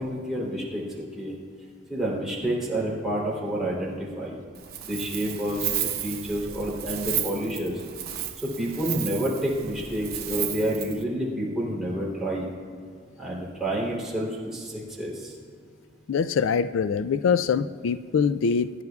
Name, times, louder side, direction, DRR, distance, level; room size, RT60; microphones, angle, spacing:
voice 1, 0.0-1.3 1.9-4.4 4.8-5.7 6.0-7.8 8.4-12.5 13.2-15.3, right 1 dB, ahead, -7 dB, 3.3 m, -29 dB
Wind, 4.5-11.0, right 10 dB, 50° right, 0.9 m, -33 dB
voice 2, 16.1-18.8, left 6 dB, 80° left, 13 dB, 0.4 m, -24 dB
24.5 x 10.5 x 2.4 m, 2.2 s
head